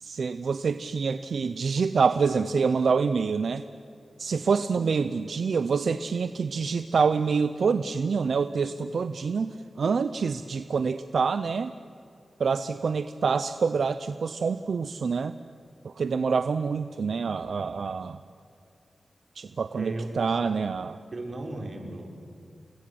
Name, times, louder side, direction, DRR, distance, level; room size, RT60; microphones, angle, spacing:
voice 1, 0.0-3.6 4.2-11.7 12.4-15.4 15.8-18.2 19.4-21.0, right 5 dB, 75° right, 11 dB, 0.7 m, -26 dB
voice 2, 19.7-20.4 21.1-22.1, right 2 dB, 45° right, 3 dB, 4.0 m, -36 dB
28.5 x 21.5 x 7.8 m, 2.4 s
wide cardioid pair, 100°, 0 cm